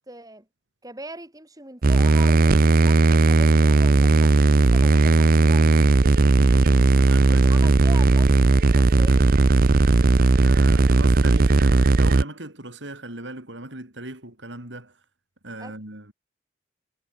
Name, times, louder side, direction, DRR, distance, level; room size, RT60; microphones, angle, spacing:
voice 1, 0.1-0.5 0.8-5.8 7.3-9.3 15.6-15.8, right 2 dB, 20° right, 3.7 m, -41 dB
sound 1, 1.8-12.2, right 3 dB, 50° right, 0.6 m, -17 dB
voice 2, 6.3-7.7 9.9-14.9 15.4-16.1, right 2 dB, 80° right, 5.5 m, -38 dB
head